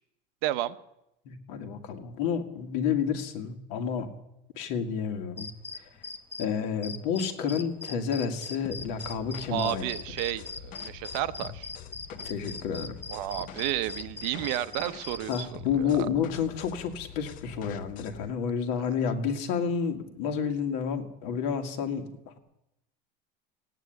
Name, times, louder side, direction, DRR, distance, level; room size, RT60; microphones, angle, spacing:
voice 1, 0.4-0.8 9.5-11.7 13.1-16.1 18.8-18.9, right 14 dB, 65° right, 13 dB, 0.8 m, -32 dB
voice 2, 1.3-4.1 4.6-5.5 5.7-5.9 6.4-9.9 12.2-12.9 15.3-22.4, left 7 dB, 65° left, 5 dB, 2.1 m, -30 dB
sound 1, 5.4-6.5 6.8-15.4, left 3 dB, 10° left, 0.8 m, -40 dB
sound 2, 8.6-18.3, left 9 dB, 40° left, 0.7 m, -46 dB
16.5 x 9.3 x 9.2 m, 0.87 s
cardioid pair, 165°, 21 cm